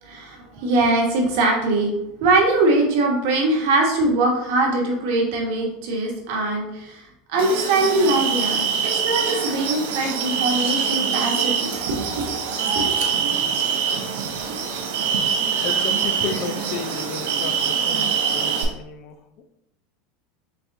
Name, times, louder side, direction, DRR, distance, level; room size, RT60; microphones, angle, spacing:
voice 1, 0.0-1.9 2.2-12.3 12.7-13.0, right 2 dB, 60° right, 0 dB, 1.1 m, -22 dB
sound 1, 7.4-18.6, right 6 dB, 80° right, 0.7 m, -24 dB
voice 2, 15.6-19.2, left 6 dB, 40° left, 8 dB, 0.4 m, -33 dB
4.1 x 3.4 x 2.7 m, 0.80 s
supercardioid pair, 155°, 0 cm